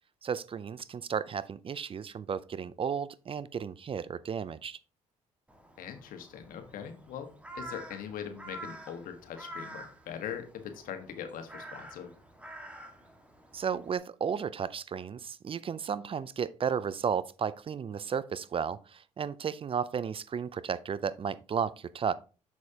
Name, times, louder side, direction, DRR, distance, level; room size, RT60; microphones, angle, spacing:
voice 1, 0.2-4.8 13.5-22.1, right 7 dB, 40° right, 0.5 m, -33 dB
Crow, 5.5-14.0, right 1 dB, 10° right, 1.7 m, -48 dB
voice 2, 5.8-7.3 7.5-12.1, left 8 dB, 70° left, 1.4 m, -41 dB
7.1 x 6.2 x 2.9 m
supercardioid pair, 65°, 15 cm